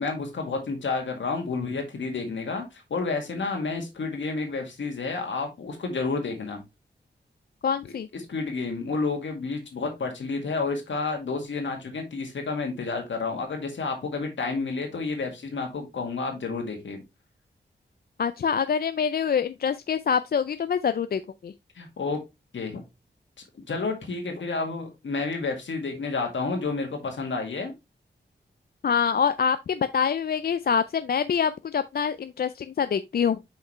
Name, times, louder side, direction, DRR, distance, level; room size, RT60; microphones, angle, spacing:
voice 1, 0.0-2.6 2.9-6.6 7.9-17.0 21.8-22.2 22.5-22.8 23.7-27.8, left 4 dB, 80° left, 2.0 m, -30 dB
voice 2, 7.6-8.1 18.2-21.5 28.8-33.4, left 7 dB, 55° left, 0.4 m, -25 dB
6.0 x 5.4 x 3.1 m
wide cardioid pair, 70°, 19 cm